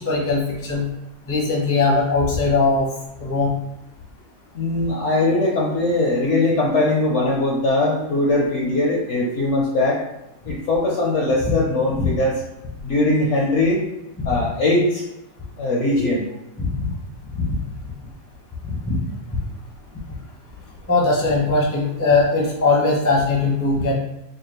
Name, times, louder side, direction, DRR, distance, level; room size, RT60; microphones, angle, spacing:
voice 1, 0.0-0.8 1.3-2.9 3.2-3.5 12.0-12.1 16.6-16.9 17.4-17.5 18.6-19.0 20.9-23.9, left 3 dB, 15° left, -4 dB, 0.5 m, -20 dB
voice 2, 4.5-10.0 10.4-12.4 12.8-13.8 14.3-15.0 15.6-16.2, left 2 dB, 60° left, -3 dB, 0.8 m, -20 dB
4.8 x 2.4 x 3.1 m, 0.93 s
omnidirectional pair, 1.8 m